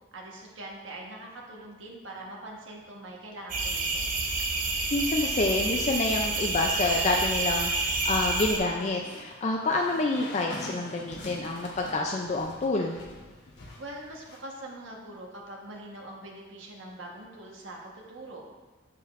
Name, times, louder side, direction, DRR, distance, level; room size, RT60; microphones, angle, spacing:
voice 1, 0.1-4.2 13.8-18.5, right 1 dB, 85° right, -2 dB, 1.2 m, -43 dB
sound 1, 3.5-8.6, right 3 dB, 45° right, 0.7 m, -28 dB
voice 2, 4.9-13.0, left 2 dB, 35° left, 1 dB, 0.4 m, -28 dB
sound 2, 8.5-14.4, left 2 dB, 65° left, 1.0 m, -45 dB
7.0 x 6.7 x 2.5 m, 1.3 s
head